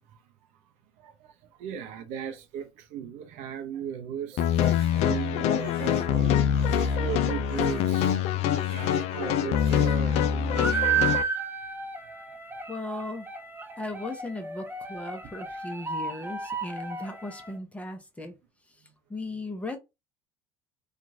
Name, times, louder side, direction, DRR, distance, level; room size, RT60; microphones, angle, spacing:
voice 1, 1.0-6.4 6.9-8.2 8.6-11.2 18.8-18.9, right 8 dB, 60° right, 0.7 m, -37 dB
sound 1, 4.4-11.2, left 9 dB, 55° left, 0.4 m, -25 dB
Crying sobbing, 4.6-9.3 9.5-10.3 10.5-11.5, right 4 dB, 75° right, 1.1 m, -51 dB
sound 2, 10.5-17.5, right 6 dB, 15° right, 0.8 m, -32 dB
voice 2, 12.7-13.3 13.8-18.3 19.1-19.8, left 2 dB, 10° left, 0.8 m, -37 dB
2.9 x 2.5 x 2.6 m
hypercardioid pair, 65°, 13 cm